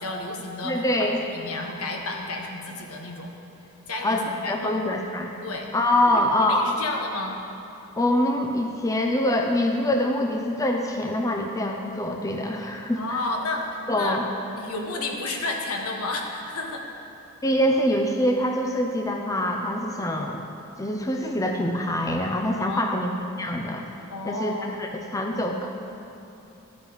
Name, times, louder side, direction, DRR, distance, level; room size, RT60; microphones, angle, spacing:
voice 1, 0.0-0.8 1.3-3.3 3.9-4.8 5.4-5.7 6.1-7.4 12.9-14.2 14.5-16.8 22.6-23.0 24.1-24.8, left 2 dB, 70° left, 1 dB, 1.3 m, -32 dB
voice 2, 0.6-1.2 4.0-5.3 5.7-6.7 8.0-13.2 13.9-14.2 17.4-20.5 20.8-23.1 23.4-23.9 24.2-25.7, left 1 dB, 15° left, 2 dB, 0.6 m, -24 dB
13.0 x 9.0 x 4.0 m, 2.8 s
head